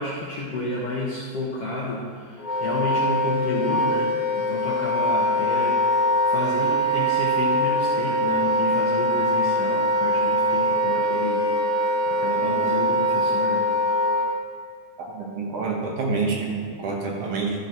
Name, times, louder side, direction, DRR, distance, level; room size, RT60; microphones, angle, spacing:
voice 1, 0.0-13.7, left 2 dB, 65° left, -4 dB, 1.5 m, -31 dB
Wind instrument woodwind instrument, 2.4-14.3, equal, 25° left, 1.4 m, -23 dB
voice 2, 15.0-17.7, right 4 dB, 65° right, -1 dB, 2.4 m, -27 dB
12.5 x 5.6 x 5.8 m, 2.2 s
omnidirectional pair, 4.1 m